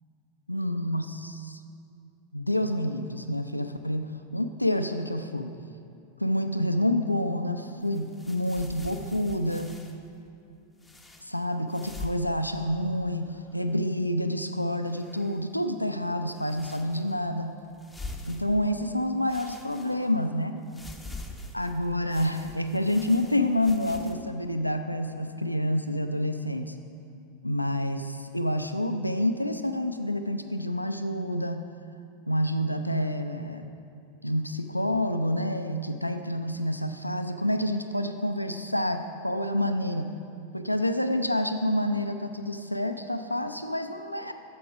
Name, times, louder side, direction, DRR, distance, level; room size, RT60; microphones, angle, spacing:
voice 1, 0.5-1.6 2.3-5.5 6.2-9.8 11.2-17.6 18.3-20.6 21.5-26.8 27.4-31.7 32.3-33.7 34.2-40.1 40.5-44.3, left 1 dB, 90° left, 7 dB, 0.4 m, -28 dB
sound 1, 7.8-10.0 10.8-11.3 11.7-12.3 12.6-12.7 13.2-13.8 14.8-15.5 16.3-17.2 17.7-18.9 19.3-20.3 20.7-24.2, left 2 dB, 5° left, 0.8 m, -44 dB
12.5 x 7.7 x 4.9 m, 2.6 s
figure-of-eight pair, 90°, 0 cm